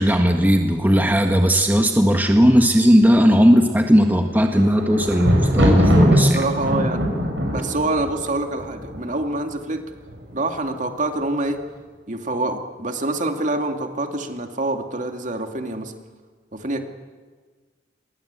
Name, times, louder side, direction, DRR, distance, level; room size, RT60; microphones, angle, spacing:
voice 1, 0.0-6.4, equal, 10° right, 3 dB, 1.5 m, -16 dB
Thunder, 4.2-9.4 10.1-10.6 10.9-11.0, equal, 90° right, 7.0 m, -20 dB
voice 2, 6.3-7.0 7.5-9.8 10.3-11.6 12.1-15.9 16.5-16.8, right 2 dB, 45° right, 5 dB, 2.5 m, -26 dB
28.0 x 22.0 x 8.3 m, 1.4 s
head